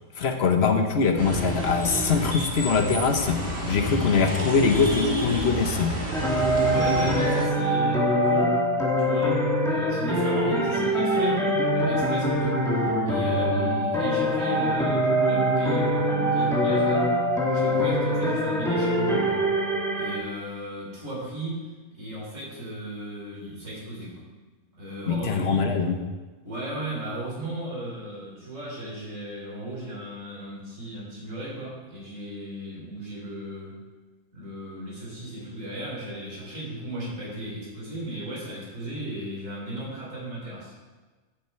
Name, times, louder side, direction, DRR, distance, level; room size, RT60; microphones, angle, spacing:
voice 1, 0.2-3.4 3.7-5.9 25.1-26.0, left 5 dB, 50° left, 5 dB, 1.1 m, -23 dB
sound 1, 1.2-7.5, equal, 40° right, 2.0 m, -30 dB
sound 2, 6.1-20.2, equal, ahead, 1.4 m, -23 dB
voice 2, 6.4-8.6 9.0-17.1 17.4-19.5 20.0-24.3 24.7-25.7 26.4-33.8 34.3-40.7, right 1 dB, 60° right, -4 dB, 3.9 m, -36 dB
12.5 x 7.1 x 4.5 m, 1.3 s
omnidirectional pair, 1.5 m